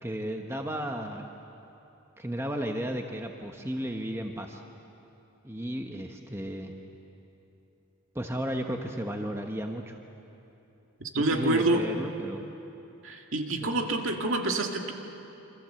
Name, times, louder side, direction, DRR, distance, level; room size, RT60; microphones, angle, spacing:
voice 1, 0.0-1.3 2.2-4.6 5.4-6.7 8.1-10.0 11.1-12.4 13.6-13.7, equal, 10° right, 3 dB, 1.1 m, -34 dB
voice 2, 11.0-11.9 13.0-14.9, right 2 dB, 60° right, 2 dB, 2.1 m, -27 dB
27.0 x 26.5 x 7.7 m, 2.9 s
head